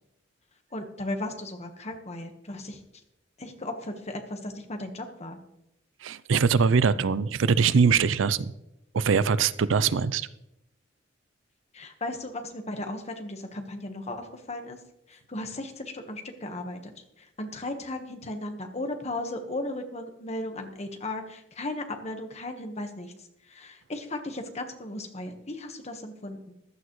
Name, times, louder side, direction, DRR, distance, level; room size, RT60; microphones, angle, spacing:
voice 1, 0.7-2.8 3.4-5.4 11.7-14.8 15.1-23.1 23.5-26.5, left 2 dB, 35° left, 5 dB, 1.4 m, -36 dB
voice 2, 6.0-8.5 8.9-10.3, right 5 dB, 80° right, 17 dB, 0.5 m, -22 dB
15.0 x 11.5 x 3.2 m, 0.84 s
head